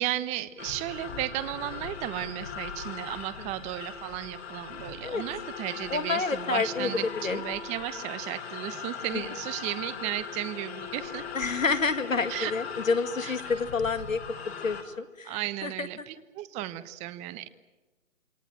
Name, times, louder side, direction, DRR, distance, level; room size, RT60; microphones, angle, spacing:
voice 1, 0.0-11.3 12.3-12.5 13.2-13.3 15.2-17.5, right 14 dB, 15° right, 15 dB, 1.1 m, -34 dB
sound 1, 0.6-14.8, left 6 dB, 55° left, 3.9 m, -39 dB
voice 2, 5.9-6.9 7.2-7.4 9.1-9.2 11.3-14.2 14.6-15.9, left 4 dB, 90° left, 11 dB, 2.1 m, -29 dB
28.0 x 22.5 x 9.0 m, 1.2 s
hypercardioid pair, 145°, 39 cm